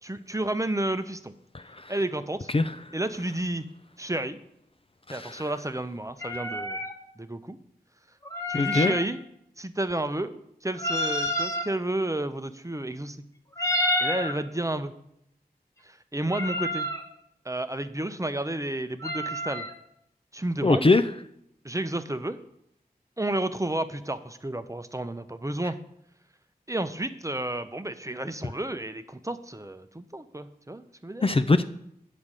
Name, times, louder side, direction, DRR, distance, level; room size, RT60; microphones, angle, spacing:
voice 1, 0.0-1.3 1.9-2.5 2.9-3.6 4.0-4.4 5.1-6.8 7.2-7.6 8.5-9.2 9.6-13.2 14.0-14.9 15.9-16.9 17.4-19.7 20.3-20.9 21.6-22.4 23.2-25.8 26.7-31.3, right 1 dB, 20° right, 10 dB, 0.7 m, -31 dB
voice 2, 1.5-1.9 2.5-2.7 5.1-5.3 8.5-8.9 20.6-21.0 31.2-31.6, left 3 dB, 35° left, 10 dB, 0.5 m, -22 dB
sound 1, 6.2-6.9 8.2-9.1 10.8-11.7 13.5-14.4 16.3-17.0 19.0-19.7, left 1 dB, 20° left, 1.3 m, -29 dB
8.2 x 5.1 x 7.4 m, 0.77 s
wide cardioid pair, 40°, 17 cm